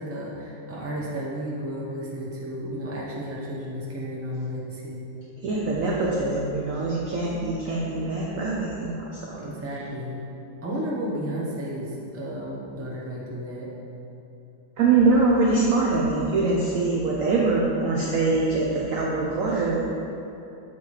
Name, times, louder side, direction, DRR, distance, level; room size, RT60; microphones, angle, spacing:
voice 1, 0.0-5.0 9.4-10.2 10.6-13.7 19.0-19.2, equal, 20° right, -5 dB, 0.3 m, -33 dB
voice 2, 5.4-9.4 14.8-19.9, right 3 dB, 65° right, -3 dB, 0.8 m, -23 dB
7.1 x 4.6 x 3.2 m, 3.0 s
omnidirectional pair, 1.9 m